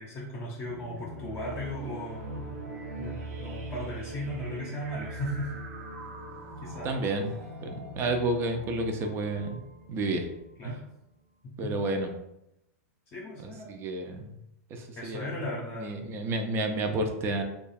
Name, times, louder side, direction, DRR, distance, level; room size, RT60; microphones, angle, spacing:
voice 1, 0.0-2.6 3.0-5.6 6.6-6.9 10.6-10.8 11.4-11.8 13.1-13.7 14.9-16.0, left 1 dB, 30° left, -3 dB, 0.7 m, -37 dB
sound 1, 0.6-10.8, right 2 dB, 75° right, 0.6 m, -42 dB
voice 2, 6.5-7.4 7.6-9.6 9.9-10.3 10.6-10.8 11.6-12.1 13.7-14.3 14.7-15.3 15.8-17.4, right 2 dB, 30° right, 5 dB, 0.5 m, -30 dB
2.9 x 2.4 x 4.2 m, 0.85 s
hypercardioid pair, 135°, 8 cm